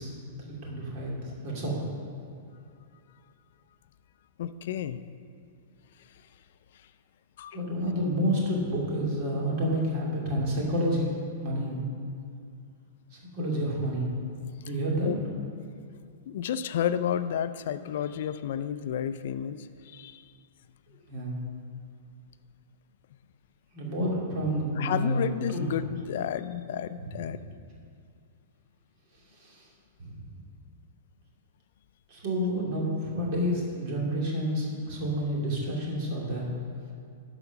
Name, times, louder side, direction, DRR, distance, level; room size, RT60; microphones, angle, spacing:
voice 1, 0.0-1.8 7.5-11.1 11.4-11.8 13.1-14.1 14.6-15.2 21.1-21.4 23.7-25.7 27.0-27.1 29.3-29.7 30.0-30.4 32.1-36.5, equal, 45° right, -3 dB, 2.6 m, -29 dB
voice 2, 4.4-5.0 6.0-6.1 7.4-7.6 15.0-15.2 16.3-20.3 24.8-27.4, left 9 dB, 60° left, 13 dB, 0.4 m, -31 dB
12.0 x 5.0 x 5.9 m, 2.4 s
hypercardioid pair, 155°, 0 cm